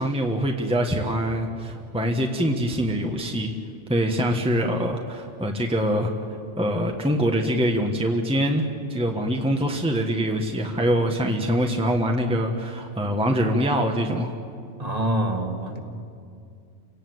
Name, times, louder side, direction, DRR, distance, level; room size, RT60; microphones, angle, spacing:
voice 1, 0.0-3.5 3.9-6.1 6.6-14.3, equal, 5° right, 2 dB, 1.4 m, -24 dB
voice 2, 14.8-15.8, right 1 dB, 30° right, 3 dB, 2.3 m, -25 dB
30.0 x 18.0 x 8.0 m, 2.4 s
omnidirectional pair, 1.2 m